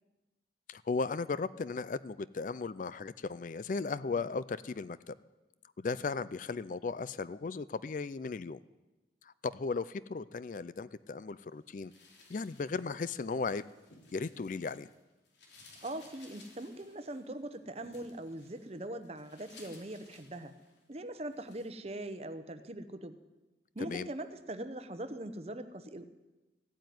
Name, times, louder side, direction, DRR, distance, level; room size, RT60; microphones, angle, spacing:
voice 1, 0.7-5.2 5.8-8.6 9.2-11.9 12.3-13.6 14.1-14.9 23.8-24.1, left 4 dB, 45° left, 17 dB, 0.4 m, -36 dB
sound 1, 11.8-15.0 15.2-20.9 21.3-21.7, left 3 dB, 80° left, 3.1 m, -59 dB
voice 2, 15.8-20.5 20.9-23.2 23.7-26.0, right 1 dB, 35° right, 10 dB, 0.9 m, -41 dB
15.0 x 9.1 x 9.4 m, 1.1 s
head